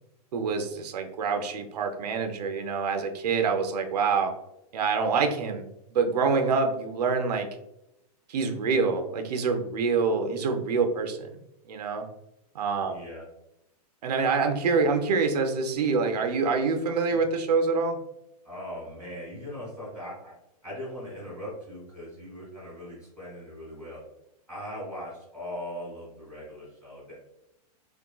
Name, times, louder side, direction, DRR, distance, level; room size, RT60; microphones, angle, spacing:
voice 1, 0.3-4.3 4.7-7.5 8.3-11.3 11.7-12.0 12.5-12.9 14.0-18.0, right 4 dB, 90° right, 5 dB, 0.6 m, -26 dB
voice 2, 12.9-13.3 18.4-20.3 20.6-24.0 24.5-27.1, equal, 5° right, -9 dB, 1.3 m, -40 dB
3.6 x 2.2 x 2.3 m, 0.86 s
supercardioid pair, 165°, 20 cm